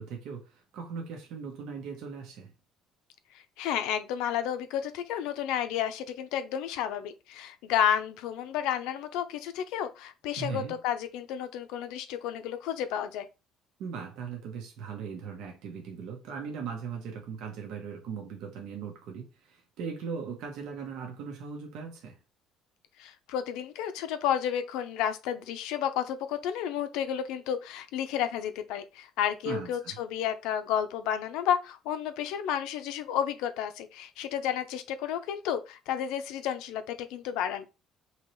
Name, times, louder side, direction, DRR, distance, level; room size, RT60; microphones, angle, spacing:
voice 1, 0.0-2.5 10.4-10.8 13.8-22.2 29.4-30.0, right 6 dB, 70° right, 0.8 m, -39 dB
voice 2, 3.6-13.3 23.0-37.7, left 9 dB, 90° left, 0.5 m, -31 dB
3.8 x 2.9 x 3.0 m
cardioid pair, 165°, 0 cm